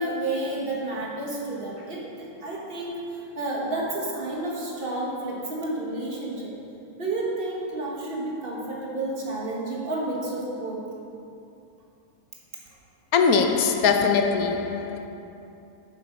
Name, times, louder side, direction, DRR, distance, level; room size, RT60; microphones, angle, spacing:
voice 1, 0.0-3.0 3.4-6.6 7.0-10.8, right 2 dB, 40° right, 1.7 m, -30 dB
voice 2, 13.1-15.1, left 5 dB, 75° left, 1.2 m, -21 dB
8.2 x 7.2 x 5.4 m
omnidirectional pair, 1.6 m